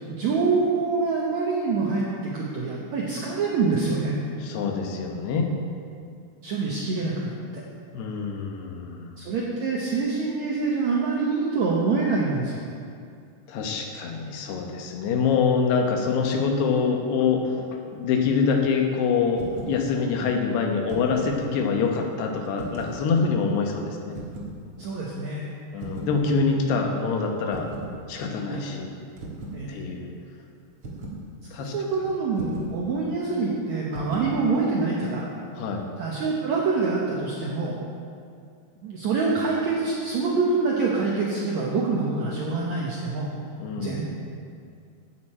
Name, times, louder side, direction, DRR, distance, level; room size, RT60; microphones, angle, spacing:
voice 1, 0.1-4.1 6.4-7.6 9.2-12.6 24.8-25.4 28.5-28.7 29.5-29.8 31.6-35.2 36.0-37.8 38.8-43.3 43.8-44.0, right 4 dB, 70° right, -4 dB, 1.8 m, -25 dB
voice 2, 4.4-5.5 7.9-9.1 13.5-17.6 17.9-24.1 25.7-27.7 28.1-29.0 29.7-30.1 31.5-31.7 32.0-32.1 35.6-35.8 43.6-44.0, left 5 dB, 85° left, 2 dB, 3.2 m, -25 dB
sound 1, 19.3-19.8 20.7-21.4 22.6-23.0 24.1-24.6 25.8-26.2 27.5-27.9 29.2-29.6 30.8-31.2 32.4-32.8 33.9-34.4, right 2 dB, 50° right, 1.9 m, -37 dB
13.5 x 9.4 x 4.4 m, 2.3 s
omnidirectional pair, 4.6 m